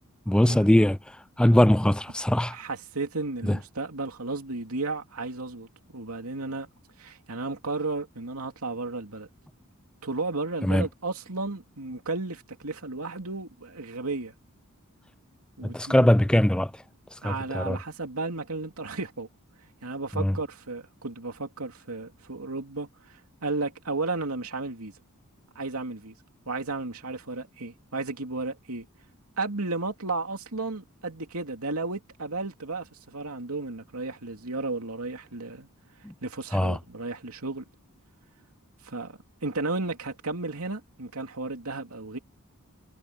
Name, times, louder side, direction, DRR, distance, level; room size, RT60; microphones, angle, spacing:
voice 1, 0.3-2.6 3.4-3.6 10.6-10.9 15.6-16.8 17.1-17.8 20.2-20.4 36.0-36.1 36.5-36.8, left 1 dB, 5° left, 0.3 m, -22 dB
voice 2, 2.5-6.7 7.0-9.3 10.0-14.3 15.6-16.1 17.2-19.3 19.8-24.9 25.5-26.1 26.5-28.9 29.4-35.7 36.2-37.6 38.8-42.2, right 3 dB, 75° right, 2.9 m, -33 dB
head